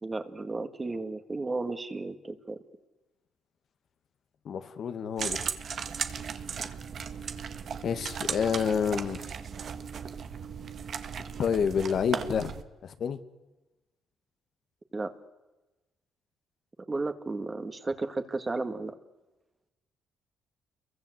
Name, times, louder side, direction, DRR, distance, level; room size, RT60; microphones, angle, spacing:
voice 1, 0.0-2.6 14.9-15.1 16.9-19.0, right 3 dB, 25° right, 8 dB, 2.2 m, -33 dB
voice 2, 4.5-5.5 7.8-9.2 11.4-12.5 12.8-13.2, left 7 dB, 60° left, 9 dB, 1.9 m, -28 dB
sound 1, 5.2-12.6, right 7 dB, 55° right, 1.8 m, -36 dB
28.5 x 23.0 x 8.2 m, 1.1 s
cardioid pair, 90°, 0 cm